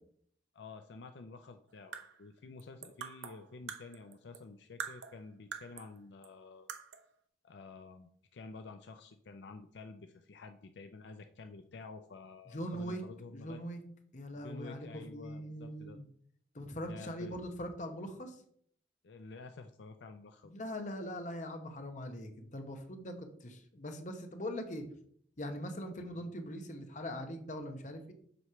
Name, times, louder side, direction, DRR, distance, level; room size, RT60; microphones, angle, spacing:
voice 1, 0.5-6.7 7.4-13.6 14.4-16.0 16.8-17.3 19.0-20.5 26.1-26.3, left 3 dB, 70° left, 7 dB, 0.5 m, -50 dB
sound 1, 1.7-4.5 4.8-6.0 6.2-6.3 6.7-7.1, right 7 dB, 90° right, 0.7 m, -45 dB
voice 2, 12.5-13.0 13.3-13.8 14.1-16.0 16.5-18.4 20.4-24.8 25.4-28.1, equal, 40° left, 5 dB, 0.9 m, -41 dB
7.8 x 3.2 x 5.6 m, 0.63 s
head